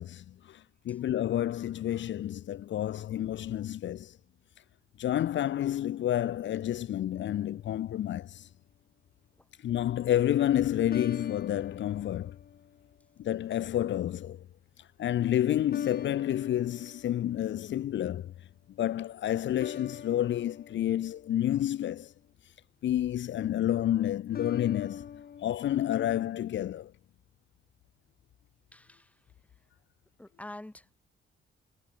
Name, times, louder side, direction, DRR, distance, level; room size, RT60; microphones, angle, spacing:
voice 1, 0.0-4.2 5.0-8.5 9.6-12.4 13.2-14.5 14.8-22.1 22.8-25.1 25.4-26.9, left 12 dB, 65° left, 0.8 m, -30 dB
sound 1, 7.1-7.9 10.9-13.0 13.5-14.0 15.7-17.7 19.6-22.0 24.3-25.5, left 7 dB, 45° left, 5.8 m, -43 dB
voice 2, 28.7-29.1 30.2-31.0, left 1 dB, 5° left, 3.0 m, -46 dB
wide cardioid pair, 165°, 21 cm